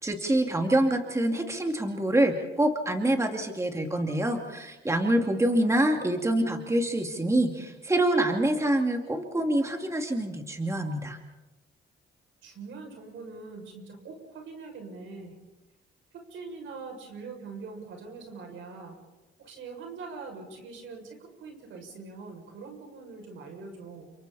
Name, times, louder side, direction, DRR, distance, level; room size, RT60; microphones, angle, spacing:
voice 1, 0.0-11.2, right 1 dB, 15° right, 3 dB, 2.6 m, -26 dB
voice 2, 5.1-5.8 12.4-15.3 16.1-19.0 19.4-24.1, right 4 dB, 75° right, 2 dB, 6.8 m, -43 dB
30.0 x 27.0 x 4.3 m, 1.1 s
cardioid pair, 90°, 20 cm